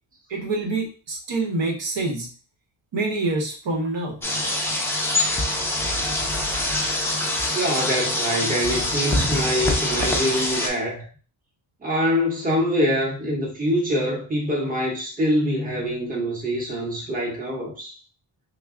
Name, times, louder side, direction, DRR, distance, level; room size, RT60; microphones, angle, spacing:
voice 1, 0.3-2.3 2.9-4.2, right 2 dB, 75° right, 1.0 m, -26 dB
sound 1, 4.2-10.7, left 1 dB, 5° left, 0.5 m, -24 dB
voice 2, 7.5-11.1 11.8-18.0, equal, 20° right, 0.8 m, -24 dB
3.4 x 2.0 x 3.5 m
wide cardioid pair, 160°, 46 cm